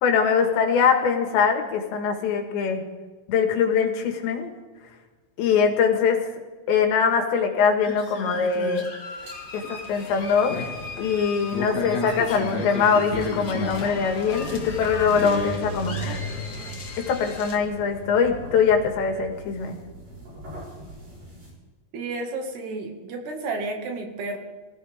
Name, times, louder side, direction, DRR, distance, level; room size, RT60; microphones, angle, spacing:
voice 1, 0.0-2.8 3.3-4.5 5.4-6.2 6.7-8.8 9.5-10.7 11.0-16.2 17.1-19.8, left 6 dB, 85° left, 4 dB, 4.1 m, -22 dB
sound 1, 7.8-17.6, left 3 dB, 55° left, 1.1 m, -34 dB
sound 2, 9.1-21.5, right 1 dB, 50° right, 8.5 m, -39 dB
voice 2, 21.9-24.4, right 3 dB, 70° right, 2 dB, 4.0 m, -31 dB
25.0 x 15.5 x 3.6 m, 1.4 s
omnidirectional pair, 5.0 m